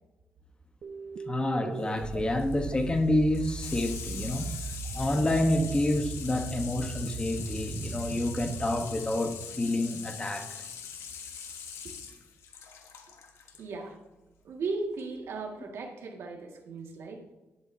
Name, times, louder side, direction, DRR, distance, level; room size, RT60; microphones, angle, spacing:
sound 1, 0.8-10.1, right 6 dB, 50° right, 0.5 m, -39 dB
voice 1, 1.3-4.6 4.9-10.5, left 1 dB, 20° left, 1.1 m, -28 dB
Water tap faucet / Sink (filling or washing), 1.8-13.6 14.9-15.0, left 7 dB, 85° left, 1.3 m, -43 dB
voice 2, 13.6-14.0 14.4-17.2, right 3 dB, 70° right, 1.9 m, -36 dB
12.5 x 10.5 x 2.8 m
cardioid pair, 115°, 5 cm